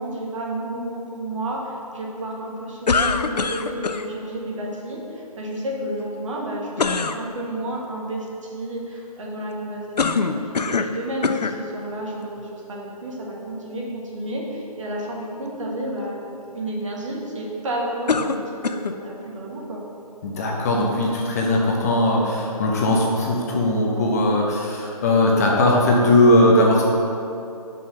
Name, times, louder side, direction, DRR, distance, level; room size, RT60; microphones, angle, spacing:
voice 1, 0.0-16.2 16.5-19.8, right 1 dB, 50° right, -3 dB, 1.6 m, -31 dB
sound 1, 2.9-4.0 6.8-7.2 10.0-11.0 11.2-11.6 12.4-12.5 18.1-19.0, left 4 dB, 90° left, 0.5 m, -23 dB
voice 2, 20.2-26.8, left 1 dB, 25° left, -2 dB, 0.7 m, -19 dB
5.5 x 5.5 x 5.6 m, 2.7 s
figure-of-eight pair, 150°, 20 cm